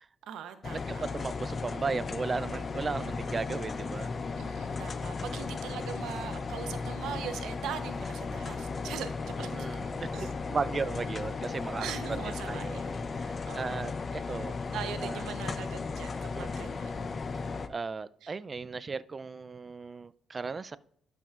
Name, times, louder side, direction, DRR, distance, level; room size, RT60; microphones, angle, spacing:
voice 1, 0.2-1.0 4.4-9.7 10.1-10.4 11.8-13.1 13.5-13.9 14.3-14.4 14.7-17.1 18.2-18.3, right 9 dB, 80° right, 0.8 m, -41 dB
sound 1, 0.6-17.7, left 4 dB, 40° left, 0.5 m, -36 dB
voice 2, 0.9-4.1 9.4-11.9 12.3-12.8 13.2-14.6 15.0-15.2 16.4-16.8 17.7-20.8, right 4 dB, 35° right, 0.3 m, -36 dB
sound 2, 1.8-13.4, equal, 20° left, 2.8 m, -55 dB
12.0 x 6.0 x 2.4 m
cardioid pair, 90°, 0 cm